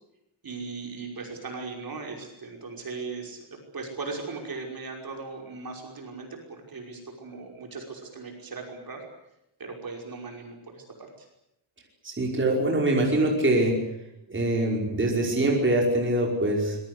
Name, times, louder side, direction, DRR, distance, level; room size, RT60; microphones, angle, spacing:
voice 1, 0.4-9.1 9.6-11.3, right 4 dB, 45° right, 2 dB, 5.7 m, -38 dB
voice 2, 12.0-13.7 14.3-16.8, right 1 dB, 25° right, 0 dB, 5.4 m, -24 dB
26.0 x 21.5 x 8.2 m, 0.83 s
wide cardioid pair, 180°, 48 cm